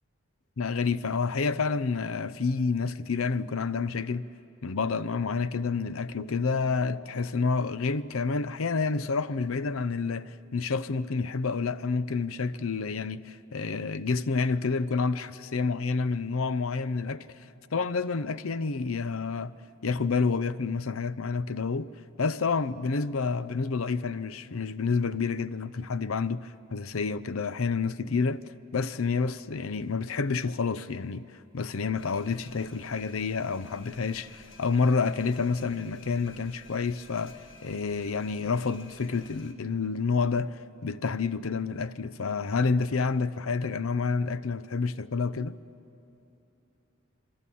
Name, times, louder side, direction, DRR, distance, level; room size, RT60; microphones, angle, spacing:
voice 1, 0.6-4.3 4.6-17.3 17.7-19.5 19.8-21.9 22.2-28.4 28.7-45.6, left 4 dB, 85° left, 0.7 m, -29 dB
sound 1, 32.0-39.5, left 3 dB, 60° left, 1.6 m, -52 dB
26.5 x 22.5 x 8.5 m
head